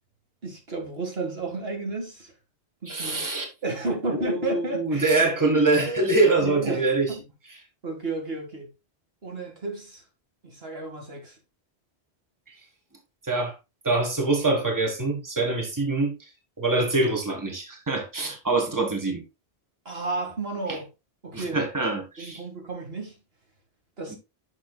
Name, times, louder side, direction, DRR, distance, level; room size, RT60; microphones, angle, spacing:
voice 1, 0.4-2.3 2.8-3.2 3.6-5.2 5.7-6.1 6.4-7.2 7.8-8.7 9.2-10.0 10.4-11.4 19.9-20.9 21.2-21.6 22.2-23.2 24.0-24.2, right 3 dB, 65° right, 2.4 m, -32 dB
voice 2, 2.9-3.5 4.1-7.1 13.2-13.6 13.8-16.1 16.6-19.2 21.3-22.4 24.1-24.2, right 2 dB, 15° right, 1.9 m, -24 dB
10.0 x 6.3 x 2.4 m
omnidirectional pair, 1.1 m